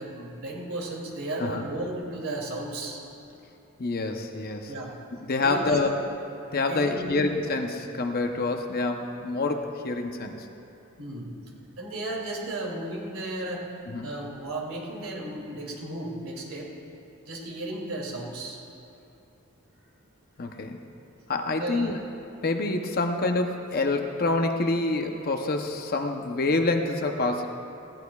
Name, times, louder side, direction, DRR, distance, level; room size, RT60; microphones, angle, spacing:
voice 1, 0.0-3.0 4.7-4.9 5.4-6.0 6.5-7.1 11.0-11.3 11.8-13.7 14.0-16.7 17.3-18.6 21.5-21.9, right 1 dB, 70° right, -2 dB, 2.7 m, -34 dB
voice 2, 3.8-4.7 5.2-5.9 6.5-10.5 13.9-14.1 20.4-20.8 21.3-22.0 22.4-27.5, left 3 dB, 45° left, 4 dB, 0.8 m, -27 dB
19.5 x 16.5 x 2.4 m, 2.8 s
head